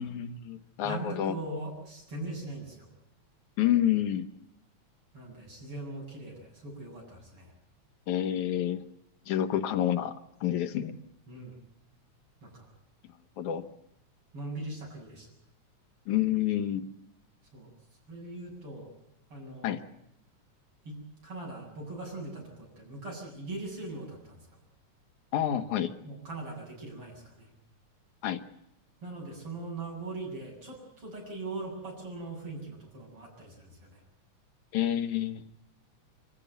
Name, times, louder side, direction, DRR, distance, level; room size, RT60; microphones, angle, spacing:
voice 1, 0.0-1.4 3.6-4.3 8.1-8.8 9.3-11.0 13.4-13.6 16.1-16.8 19.6-19.8 25.3-25.9 28.2-28.4 34.7-35.4, left 11 dB, 85° left, 7 dB, 2.8 m, -28 dB
voice 2, 0.8-2.9 5.1-7.5 11.3-11.5 12.4-12.7 14.3-15.3 17.5-17.7 18.1-18.9 19.3-19.9 20.9-21.0 21.2-24.4 26.0-27.5 29.0-34.0, right 2 dB, 45° right, -1 dB, 8.9 m, -40 dB
25.5 x 15.5 x 9.3 m, 0.80 s
omnidirectional pair, 3.4 m